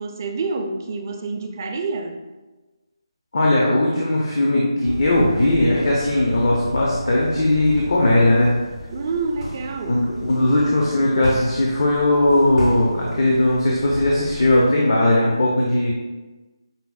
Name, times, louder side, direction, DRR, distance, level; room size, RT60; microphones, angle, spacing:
voice 1, 0.0-2.2 8.9-10.0, right 4 dB, 35° right, 3 dB, 0.4 m, -27 dB
voice 2, 3.3-8.6 9.9-15.9, left 1 dB, 55° left, -4 dB, 0.6 m, -18 dB
sound 1, 4.8-14.6, left 1 dB, 75° left, 1.0 m, -33 dB
5.4 x 2.0 x 2.3 m, 1.2 s
figure-of-eight pair, 155°, 3 cm